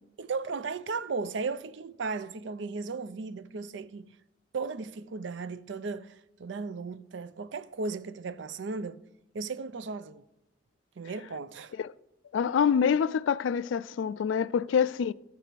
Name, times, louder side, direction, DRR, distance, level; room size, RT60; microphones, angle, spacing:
voice 1, 0.2-4.1 4.5-9.0 9.3-10.2 11.0-11.7, right 4 dB, 75° right, 0.5 m, -36 dB
voice 2, 12.3-15.1, left 7 dB, 85° left, 0.3 m, -26 dB
12.5 x 4.6 x 6.6 m
head